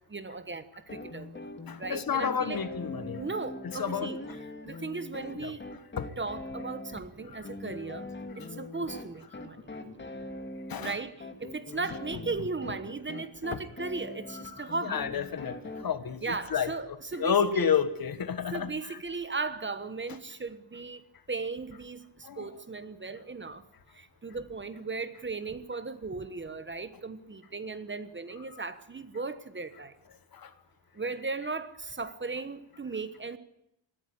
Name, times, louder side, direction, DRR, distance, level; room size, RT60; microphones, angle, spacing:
voice 1, 0.1-1.4 1.8-2.6 3.2-4.2 4.6-5.6 6.2-8.1 8.4-9.6 10.8-15.0 16.2-17.8 18.5-21.0 21.3-23.6 24.0-29.9 31.0-33.4, right 4 dB, 25° right, 12 dB, 1.1 m, -36 dB
sound 1, 0.9-15.8, left 2 dB, 25° left, 2.0 m, -42 dB
voice 2, 1.7-3.3 3.6-4.1 5.3-5.5 6.0-6.1 10.7-11.0 13.5-13.6 14.3-15.6 15.8-19.0 22.2-22.5 30.4-30.5, left 7 dB, 50° left, 13 dB, 1.4 m, -31 dB
20.5 x 14.0 x 10.0 m, 0.79 s
wide cardioid pair, 165°, 46 cm